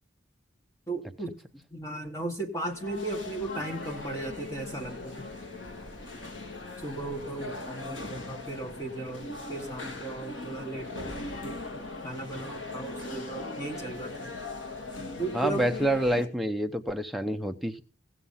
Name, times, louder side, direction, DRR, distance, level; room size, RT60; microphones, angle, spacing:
voice 1, 0.9-1.4 1.7-5.3 6.8-11.2 11.4-14.3 15.2-15.6, right 2 dB, 15° left, 3 dB, 1.7 m, -36 dB
sound 1, 2.6-16.3, left 3 dB, 85° left, 2.1 m, -40 dB
voice 2, 15.3-17.8, right 1 dB, ahead, 4 dB, 0.8 m, -28 dB
17.0 x 6.1 x 5.6 m, 0.39 s
head